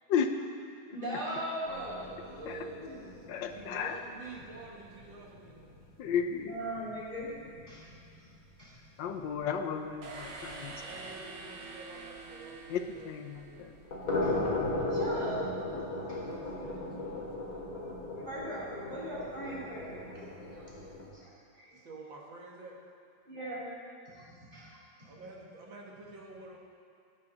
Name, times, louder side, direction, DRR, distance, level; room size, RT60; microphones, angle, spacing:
voice 1, 0.1-0.4 2.5-2.6 3.3-4.0 6.0-6.6 9.0-10.8 12.7-13.7, left 7 dB, 80° left, 7 dB, 1.3 m, -33 dB
voice 2, 0.9-2.3 2.8-3.0 6.0-6.2 6.4-8.3 8.6-8.7 9.1-9.2 10.5-10.6 14.2-14.4 14.7-15.7 16.1-16.2 18.3-20.6 21.1-21.8 23.3-23.7 24.1-25.2, right 1 dB, 25° right, -9 dB, 3.5 m, -40 dB
sound 1, 1.7-7.6 7.8-7.9 8.3-8.4 8.8-8.9 9.2-9.3 12.1-12.2 13.7-21.1, left 2 dB, 50° left, 2.6 m, -37 dB
voice 3, 2.2-5.6 10.8-13.8 16.2-17.7 21.7-22.8 25.0-26.6, right 3 dB, 85° right, -2 dB, 2.2 m, -49 dB
sound 2, 10.0-13.9, right 3 dB, 70° right, 2.0 m, -46 dB
16.5 x 9.0 x 3.9 m, 2.4 s
omnidirectional pair, 2.0 m